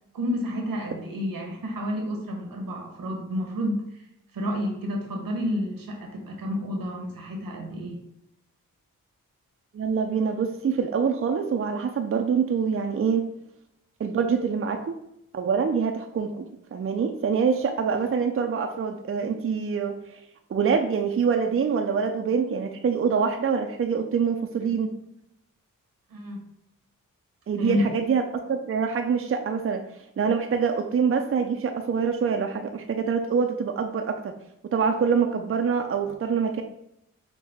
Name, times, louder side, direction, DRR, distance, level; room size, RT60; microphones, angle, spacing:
voice 1, 0.1-4.0 4.3-8.0 26.1-26.4 27.6-27.8, left 1 dB, 80° right, 1 dB, 1.0 m, -30 dB
voice 2, 9.7-13.2 14.0-14.9 15.3-19.9 20.5-24.9 27.5-28.2 28.5-29.8 30.2-34.3 34.7-36.6, right 6 dB, 40° right, 4 dB, 0.5 m, -25 dB
5.5 x 2.1 x 3.4 m, 0.80 s
cardioid pair, 50°, 34 cm